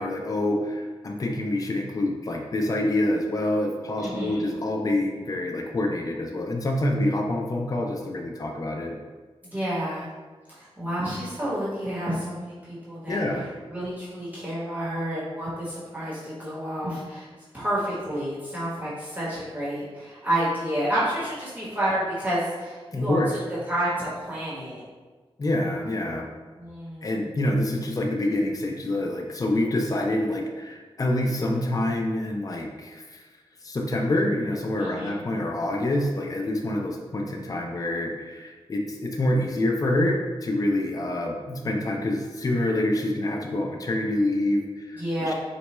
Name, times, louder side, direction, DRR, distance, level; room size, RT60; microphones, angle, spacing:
voice 1, 0.0-9.0 13.1-13.5 22.9-23.4 25.4-26.3 27.0-33.2 33.6-45.4, left 1 dB, 35° left, 1 dB, 0.4 m, -26 dB
voice 2, 4.0-4.5 9.5-10.1 10.5-13.2 13.7-17.3 17.5-23.2 23.7-24.8 26.6-27.2 34.8-35.2 45.0-45.4, right 1 dB, 15° right, -9 dB, 1.1 m, -30 dB
4.1 x 2.2 x 3.0 m, 1.4 s
wide cardioid pair, 100°, 10 cm